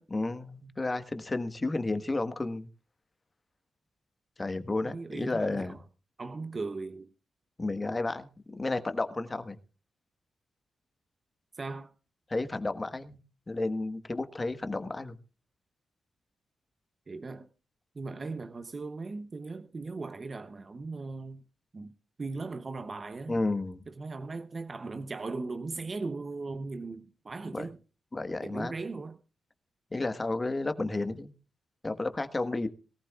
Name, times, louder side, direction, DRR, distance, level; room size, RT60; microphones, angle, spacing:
voice 1, 0.1-2.7 4.4-5.8 7.6-9.6 12.3-13.2 13.5-15.2 23.3-23.8 27.5-27.7 28.1-28.7 29.9-31.3 31.8-32.7, left 2 dB, 30° left, 1.4 m, -32 dB
voice 2, 4.8-5.8 6.2-7.1 11.5-11.9 17.1-17.5 17.9-21.4 21.7-21.9 22.2-23.4 23.9-27.8 28.4-29.2, right 3 dB, 45° right, 0.8 m, -38 dB
21.5 x 14.5 x 2.4 m
cardioid pair, 65°, 0 cm